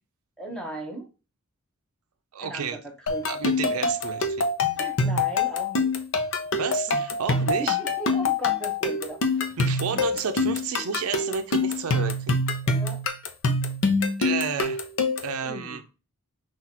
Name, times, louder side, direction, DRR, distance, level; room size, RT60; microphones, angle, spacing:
voice 1, 0.4-1.1 2.4-2.8 3.1-3.3 3.6-3.9 4.8-5.9 7.6-10.0 12.6-13.0 15.4-15.8, right 1 dB, 5° left, 0.9 m, -37 dB
voice 2, 2.3-2.8 3.3-4.5 6.6-7.8 9.6-12.4 14.2-14.8 15.2-15.8, right 6 dB, 85° right, 0.5 m, -31 dB
sound 1, 3.1-15.4, left 3 dB, 60° left, 0.7 m, -25 dB
5.9 x 2.4 x 2.8 m
head